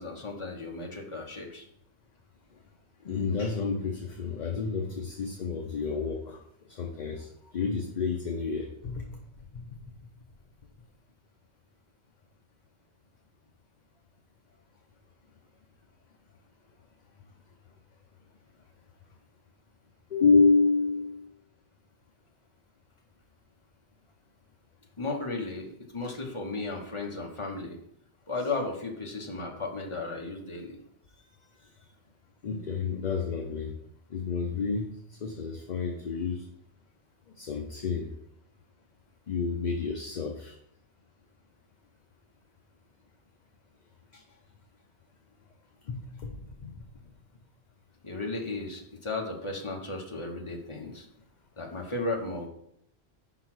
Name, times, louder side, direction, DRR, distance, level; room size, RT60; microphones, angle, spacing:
voice 1, 0.0-1.7 25.0-27.8 28.3-30.8 48.0-51.1 51.6-52.5, left 3 dB, 30° left, 1 dB, 1.1 m, -35 dB
voice 2, 3.0-6.4 6.7-9.0 9.5-9.6 20.1-21.3 32.4-33.7 34.1-34.9 35.2-36.5 37.4-38.1 39.3-40.6 44.1-44.2 45.9-46.8, left 4 dB, 50° left, 3 dB, 0.7 m, -29 dB
5.4 x 4.0 x 6.0 m, 0.73 s
omnidirectional pair, 1.1 m